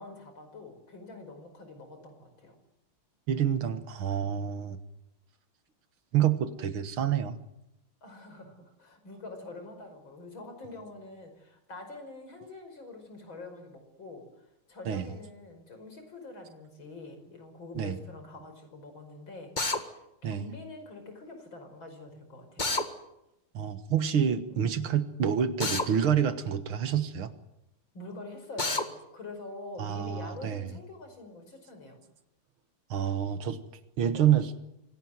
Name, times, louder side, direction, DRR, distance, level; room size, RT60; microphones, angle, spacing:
voice 1, 0.0-2.6 8.0-14.3 14.7-22.7 24.5-24.6 27.9-32.0 34.1-34.3, left 2 dB, 65° left, 6 dB, 6.0 m, -45 dB
voice 2, 3.3-4.8 6.1-7.4 14.9-15.1 17.8-18.0 20.2-20.5 23.5-27.3 29.8-30.6 32.9-33.6 34.0-34.5, right 9 dB, 75° right, 10 dB, 2.3 m, -27 dB
Drill, 19.6-19.8 22.6-22.9 25.6-25.9 28.6-28.8, left 3 dB, 25° left, 1.7 m, -28 dB
26.0 x 18.0 x 9.4 m, 0.87 s
omnidirectional pair, 2.3 m